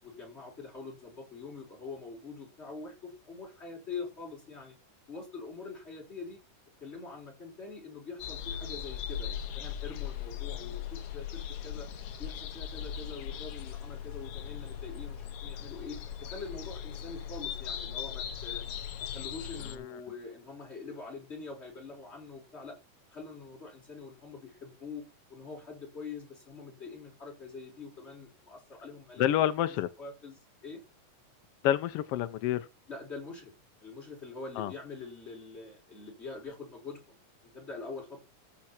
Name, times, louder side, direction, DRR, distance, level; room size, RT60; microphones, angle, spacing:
voice 1, 0.0-4.7 5.1-6.4 6.8-11.9 12.2-18.6 19.1-22.8 23.1-29.4 30.0-30.4 30.6-30.8 32.9-33.5 33.8-37.0 37.4-38.2, left 4 dB, 20° left, 5.7 m, -44 dB
sound 1, 8.2-19.8, left 9 dB, 65° left, 1.6 m, -39 dB
voice 2, 29.2-29.9 31.6-32.7 34.6-34.7, left 12 dB, 85° left, 1.3 m, -28 dB
14.5 x 6.0 x 4.4 m
omnidirectional pair, 3.5 m